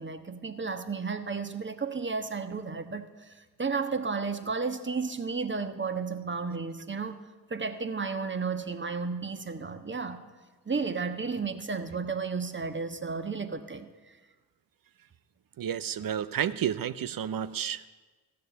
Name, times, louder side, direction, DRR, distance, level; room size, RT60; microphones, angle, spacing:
voice 1, 0.0-7.2 7.5-10.2 10.6-14.2, right 4 dB, 25° right, 9 dB, 1.3 m, -33 dB
voice 2, 15.6-17.9, right 9 dB, 55° right, 14 dB, 0.7 m, -31 dB
14.5 x 6.7 x 9.5 m, 1.3 s
supercardioid pair, 45°, 41 cm